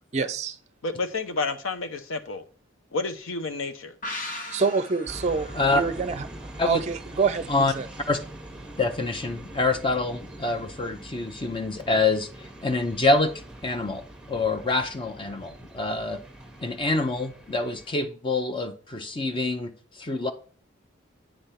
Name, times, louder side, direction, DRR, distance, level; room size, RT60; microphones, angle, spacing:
voice 1, 0.1-0.6 4.5-6.3 6.7-7.9, right 4 dB, 35° right, 0.4 m, -26 dB
voice 2, 0.8-2.4 2.9-3.9, left 3 dB, 85° left, 0.8 m, -30 dB
sound 1, 4.0-7.5 7.8-7.9, left 1 dB, 40° left, 0.9 m, -40 dB
sound 2, 5.1-17.9, right 1 dB, 5° right, 0.8 m, -43 dB
voice 3, 8.8-13.3 13.6-14.0 14.3-16.2 16.6-20.3, left 3 dB, 25° left, 0.6 m, -26 dB
8.7 x 3.4 x 5.7 m
head